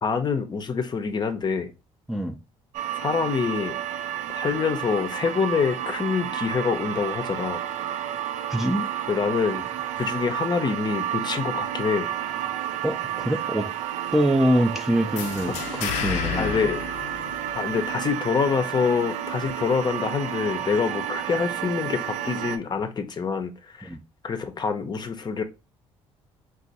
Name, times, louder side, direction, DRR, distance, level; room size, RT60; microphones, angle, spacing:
voice 1, 0.0-1.7 3.0-3.8 4.3-7.6 9.1-9.7 10.0-12.1 16.4-16.8 17.5-23.9 24.2-25.4, left 5 dB, 35° left, 0.6 m, -26 dB
sound 1, 2.7-22.6, right 10 dB, 75° right, 0.4 m, -31 dB
voice 2, 8.5-8.9 12.8-13.7 14.1-16.6 23.8-24.0, right 1 dB, 5° right, 0.5 m, -24 dB
sound 2, 15.2-17.9, left 9 dB, 85° left, 0.4 m, -31 dB
2.5 x 2.4 x 4.0 m
supercardioid pair, 75°, 12 cm